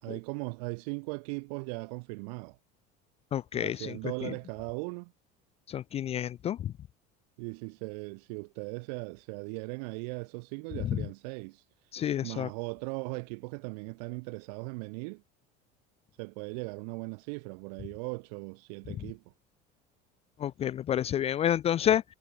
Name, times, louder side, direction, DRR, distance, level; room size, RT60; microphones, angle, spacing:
voice 1, 0.0-2.6 3.5-5.1 7.4-11.9 12.2-15.2 16.2-19.2, right 34 dB, 85° right, 1.6 m, -38 dB
voice 2, 3.3-3.9 5.7-6.7 11.9-12.5 20.4-22.0, left 10 dB, 30° left, 0.4 m, -29 dB
cardioid pair, 140°, 20 cm